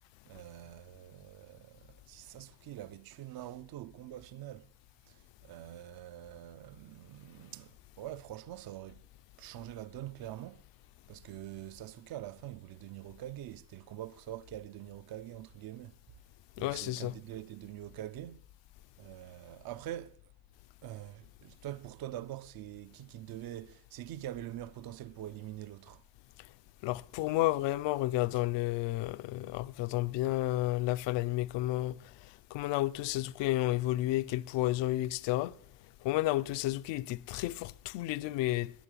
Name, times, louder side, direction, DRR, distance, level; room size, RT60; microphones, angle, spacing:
voice 1, 0.2-4.7 5.1-9.1 9.4-10.6 11.1-16.0 16.6-18.4 19.0-20.2 20.8-26.0, right 13 dB, 60° right, 0.6 m, -45 dB
voice 2, 16.6-17.2 26.8-32.0 32.5-35.5 36.0-38.7, left 16 dB, 85° left, 0.7 m, -31 dB
12.0 x 11.0 x 9.0 m
cardioid pair, 115°, 42 cm